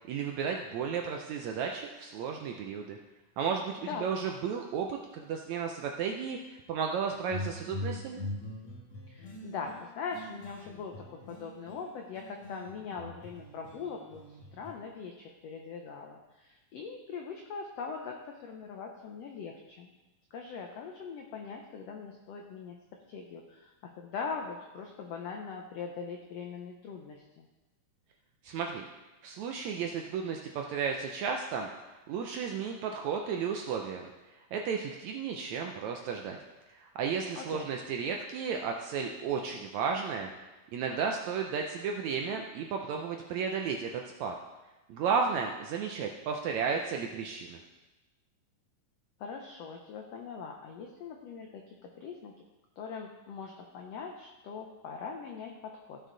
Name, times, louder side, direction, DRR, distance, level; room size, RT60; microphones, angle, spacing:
voice 1, 0.1-3.0 3.4-3.7 4.0-8.3 28.4-28.8 29.2-31.7 32.1-34.1 34.5-36.4 36.7-40.3 40.7-44.3 44.9-47.6, right 6 dB, 80° right, 2 dB, 1.6 m, -33 dB
sound 1, 7.1-11.9 12.2-14.7, left 1 dB, 60° left, 2.6 m, -42 dB
voice 2, 9.1-19.9 20.3-22.7 23.1-27.5 37.3-37.7 49.2-52.3 52.8-56.0, left 5 dB, 90° left, 2 dB, 1.4 m, -41 dB
15.5 x 6.4 x 3.9 m, 1.1 s
omnidirectional pair, 3.9 m